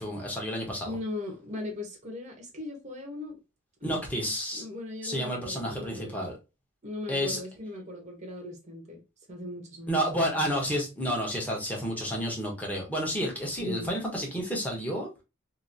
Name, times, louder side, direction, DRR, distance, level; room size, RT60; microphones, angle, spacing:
voice 1, 0.0-0.9 3.8-4.6 5.0-6.3 7.1-7.4 9.9-15.2, equal, 5° left, 1.0 m, -30 dB
voice 2, 0.8-3.4 3.8-3.9 4.2-6.2 6.8-9.0 9.3-10.2 13.6-13.9, left 1 dB, 30° right, 0.9 m, -38 dB
2.9 x 2.6 x 2.5 m
head